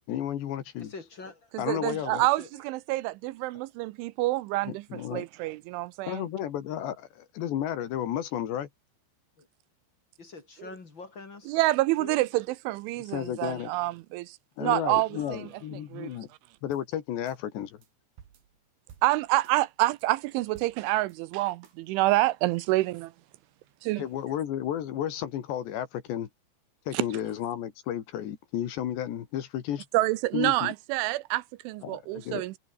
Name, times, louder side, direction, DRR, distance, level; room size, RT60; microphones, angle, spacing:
voice 1, 0.1-0.9 1.6-2.2 4.7-5.3 6.1-8.7 13.1-13.7 14.6-16.3 16.6-17.8 24.0-26.3 26.9-29.9 30.3-30.7 31.8-32.4, left 10 dB, 65° left, 3.9 m, -32 dB
voice 2, 0.8-1.4 2.2-2.7 6.6-6.8 9.4-9.5 10.2-12.3 15.1-15.8, left 3 dB, 30° left, 2.8 m, -46 dB
voice 3, 1.5-6.2 11.5-16.1 19.0-23.1 23.8-24.0 26.9-27.0 29.9-32.6, right 18 dB, 80° right, 3.1 m, -28 dB
sound 1, 16.6-16.8 17.3-17.4 17.8-17.9 18.2-19.6 20.0-20.1 20.5-21.2 21.6-21.8, right 8 dB, 55° right, 4.2 m, -55 dB
omnidirectional pair, 5.6 m